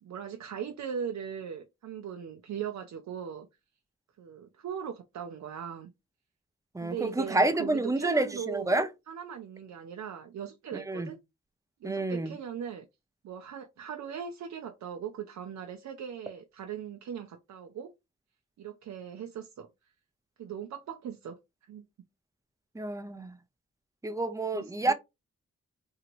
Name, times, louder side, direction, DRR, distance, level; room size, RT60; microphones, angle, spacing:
voice 1, 0.0-3.5 4.2-5.9 6.8-8.8 9.1-11.2 11.8-12.8 13.2-17.9 18.6-19.7 20.4-21.4 21.7-21.8 24.5-24.9, right 8 dB, 75° right, 0.5 m, -39 dB
voice 2, 6.7-8.9 10.7-11.1 11.8-12.4 22.7-23.4 24.0-24.9, right 2 dB, 10° right, 0.6 m, -29 dB
2.9 x 2.8 x 2.5 m
cardioid pair, 45°, 29 cm